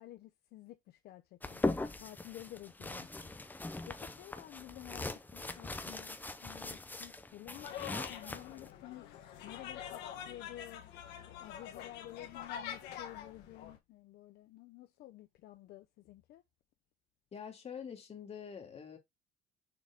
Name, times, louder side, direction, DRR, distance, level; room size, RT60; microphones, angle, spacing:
voice 1, 0.0-1.6 2.0-3.3 3.8-9.1 9.4-10.8 11.2-16.4, left 15 dB, 70° left, 0.6 m, -52 dB
sound 1, 1.4-8.7, left 2 dB, 10° left, 0.7 m, -40 dB
sound 2, 7.5-13.8, left 9 dB, 85° left, 1.4 m, -46 dB
voice 2, 17.3-19.0, left 7 dB, 35° left, 2.3 m, -45 dB
6.7 x 3.9 x 3.6 m
cardioid pair, 110°, 17 cm